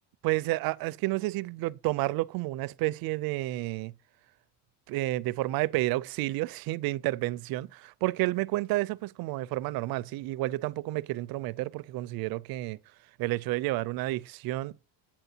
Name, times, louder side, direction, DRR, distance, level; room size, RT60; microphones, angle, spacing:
voice 1, 0.2-3.9 4.9-12.8 13.2-14.7, right 18 dB, 55° right, 0.5 m, -30 dB
8.8 x 7.8 x 2.8 m
cardioid pair, 140°, 42 cm